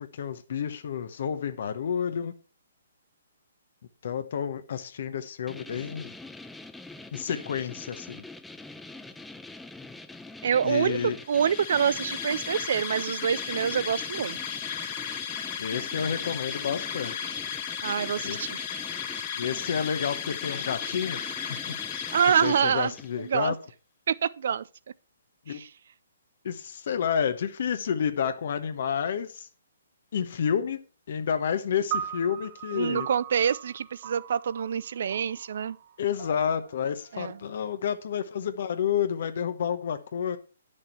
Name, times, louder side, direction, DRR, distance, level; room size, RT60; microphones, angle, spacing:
voice 1, 0.1-2.3 4.0-6.1 7.1-8.2 10.6-11.2 15.6-17.4 18.2-18.5 19.3-21.3 22.4-23.6 25.5-25.6 26.4-29.5 30.1-30.8 31.1-33.1 36.0-40.4, left 8 dB, 60° left, 0.9 m, -30 dB
sound 1, 5.5-23.2, left 2 dB, 5° left, 0.5 m, -44 dB
voice 2, 10.4-14.4 17.8-18.6 22.1-23.5 24.1-24.7 25.5-25.7 32.7-35.8 37.1-37.4, right 8 dB, 60° right, 0.4 m, -26 dB
sound 2, 11.2-23.0, left 8 dB, 40° left, 1.2 m, -35 dB
sound 3, 31.9-38.4, right 9 dB, 35° right, 1.2 m, -40 dB
9.1 x 6.5 x 4.4 m
hypercardioid pair, 135°, 0 cm